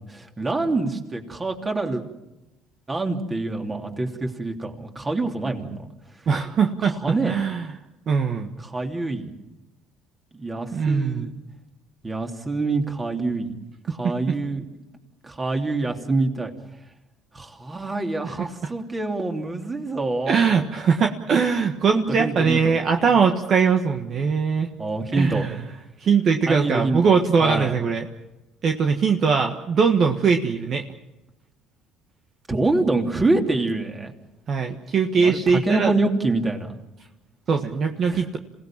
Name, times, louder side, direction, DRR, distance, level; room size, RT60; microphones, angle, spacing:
voice 1, 0.1-2.0 2.9-5.8 6.8-7.4 8.6-9.3 10.3-11.3 12.0-13.6 13.9-14.6 15.2-16.5 17.3-20.4 21.9-23.0 24.8-25.4 26.5-27.7 32.5-34.1 35.2-36.7 38.1-38.2, right 2 dB, 20° right, 3 dB, 3.2 m, -26 dB
voice 2, 6.3-7.7 8.1-8.6 10.7-11.3 18.2-18.3 18.6-18.7 20.3-24.7 25.1-25.6 26.0-28.1 28.6-30.8 34.5-35.9 37.5-38.4, right 5 dB, 50° right, 4 dB, 1.5 m, -21 dB
27.0 x 17.5 x 7.5 m, 0.95 s
supercardioid pair, 90°, 0 cm